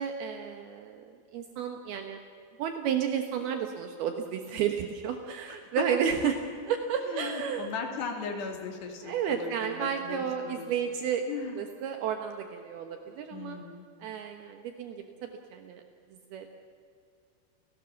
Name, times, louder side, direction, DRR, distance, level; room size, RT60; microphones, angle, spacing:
voice 1, 0.0-2.2 2.6-6.4 6.7-7.7 9.0-11.3 11.6-13.6 14.0-15.8 16.3-16.5, right 8 dB, 70° right, 5 dB, 2.9 m, -32 dB
voice 2, 7.1-10.7 11.3-11.6 13.3-13.9, left 5 dB, 75° left, 2 dB, 4.8 m, -38 dB
29.5 x 17.5 x 7.2 m, 2.3 s
omnidirectional pair, 4.9 m